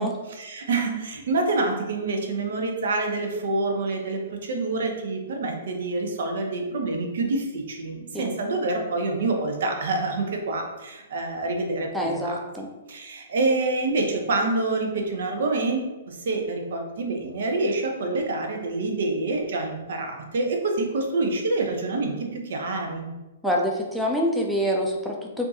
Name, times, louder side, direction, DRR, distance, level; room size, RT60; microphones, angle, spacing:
voice 1, 0.0-12.4 12.9-23.1, right 2 dB, 60° right, 3 dB, 0.6 m, -27 dB
voice 2, 11.9-12.7 23.4-25.5, equal, ahead, -1 dB, 0.5 m, -26 dB
4.4 x 2.6 x 2.7 m, 1.1 s
figure-of-eight pair, 115°, 0 cm